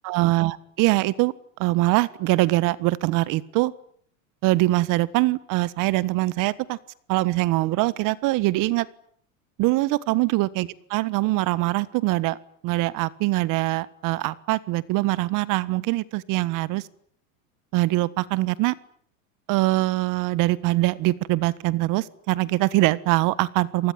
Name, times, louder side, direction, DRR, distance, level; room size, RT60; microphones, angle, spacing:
voice 1, 0.0-1.3 1.6-3.7 4.4-6.8 7.1-8.9 9.6-12.4 12.6-16.9 17.7-18.7 19.5-23.9, right 19 dB, 50° right, 19 dB, 1.5 m, -23 dB
27.5 x 19.5 x 9.9 m, 0.63 s
supercardioid pair, 130°, 41 cm